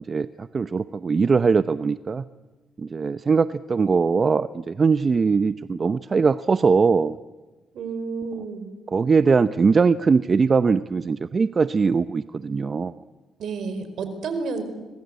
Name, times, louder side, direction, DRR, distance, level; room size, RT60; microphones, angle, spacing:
voice 1, 0.0-2.2 2.8-7.2 8.9-12.9, right 5 dB, 40° right, 13 dB, 0.8 m, -21 dB
voice 2, 7.7-8.7 13.4-14.6, right 4 dB, 70° right, 9 dB, 4.8 m, -30 dB
26.0 x 21.0 x 8.3 m, 1.2 s
supercardioid pair, 65°, 0 cm